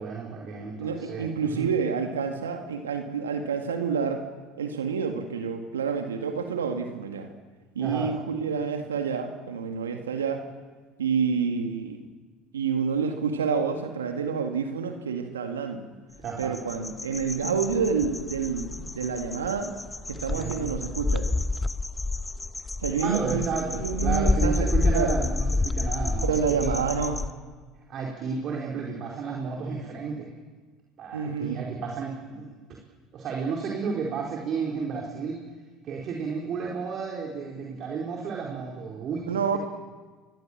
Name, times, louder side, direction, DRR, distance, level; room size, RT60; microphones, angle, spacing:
voice 1, 0.0-1.7 7.8-8.1 16.2-16.6 20.3-20.7 23.0-26.7 27.9-30.3 31.0-32.5 33.1-35.4 35.8-39.6, right 5 dB, 50° right, -1 dB, 4.4 m, -32 dB
voice 2, 0.7-4.2 4.6-7.3 7.8-10.4 11.0-12.0 12.5-15.8 16.4-19.7 20.1-21.3 22.8-23.5 23.7-25.2 26.2-27.2 31.1-31.6 39.3-39.6, right 6 dB, 85° right, 5 dB, 2.0 m, -28 dB
sound 1, 16.2-27.3, left 3 dB, 15° left, 1.1 m, -29 dB
26.0 x 22.5 x 7.5 m, 1.4 s
hypercardioid pair, 70°, 0 cm